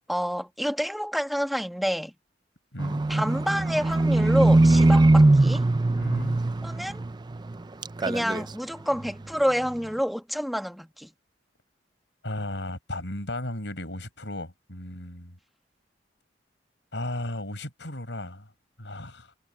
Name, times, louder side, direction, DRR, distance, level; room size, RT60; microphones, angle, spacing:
voice 1, 0.1-2.1 3.1-5.7 6.6-7.0 8.0-11.1, equal, ahead, 1.5 m, -28 dB
voice 2, 2.7-3.0 5.9-6.4 12.2-15.4 16.9-18.5 18.8-19.3, left 1 dB, 75° left, 6.1 m, -35 dB
Livestock farm animals working animals, 2.8-7.6 7.8-8.5 9.0-9.1, right 2 dB, 25° right, 0.5 m, -21 dB
head